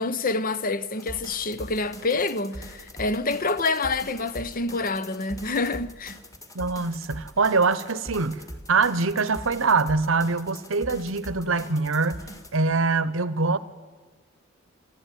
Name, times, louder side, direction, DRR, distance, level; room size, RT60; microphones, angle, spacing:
voice 1, 0.0-6.2, left 3 dB, 40° left, 0.9 m, -27 dB
sound 1, 1.0-12.6, equal, 15° left, 2.0 m, -42 dB
voice 2, 6.5-12.3 12.5-13.6, right 4 dB, 65° right, 1.0 m, -24 dB
27.5 x 12.0 x 9.2 m
head